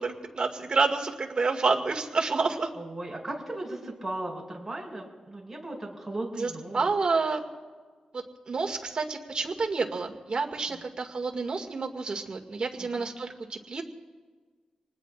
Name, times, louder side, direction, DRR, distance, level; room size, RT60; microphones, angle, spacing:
voice 1, 0.0-2.7 6.4-7.4 8.1-13.8, right 4 dB, 50° right, 2 dB, 2.1 m, -29 dB
voice 2, 2.7-6.9 10.7-10.8 12.8-13.0, right 2 dB, 15° right, -2 dB, 6.1 m, -37 dB
27.0 x 20.0 x 2.5 m, 1.5 s
wide cardioid pair, 95°, 2 cm